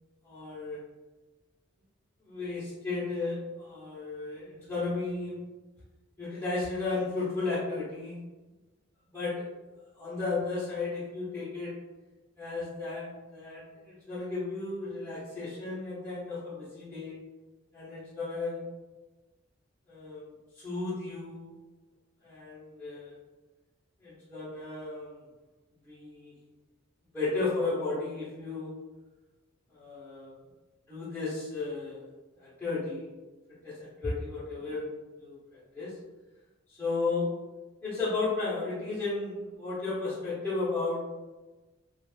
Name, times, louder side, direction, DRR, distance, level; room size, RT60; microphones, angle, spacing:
voice 1, 0.2-0.8 2.2-5.4 6.2-8.2 9.1-9.4 9.9-11.7 12.4-17.2 17.7-18.6 19.9-20.3 20.6-21.5 22.2-23.2 24.0-25.2 25.8-26.3 27.1-28.7 29.7-30.3 30.9-32.0 32.4-33.1 33.6-34.9 35.2-35.9 36.7-37.3 37.8-41.0, left 3 dB, 10° left, -12 dB, 0.7 m, -34 dB
2.4 x 2.2 x 3.1 m, 1.2 s
head